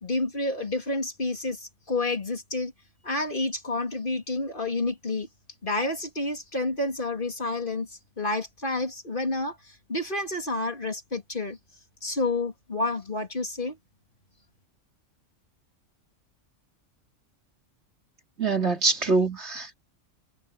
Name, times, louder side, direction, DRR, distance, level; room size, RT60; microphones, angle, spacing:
voice 1, 0.0-2.7 3.0-5.3 5.6-11.6 12.0-13.8, left 2 dB, 40° left, 3.1 m, -29 dB
voice 2, 18.4-19.7, right 4 dB, 60° right, 3.0 m, -24 dB
omnidirectional pair, 1.3 m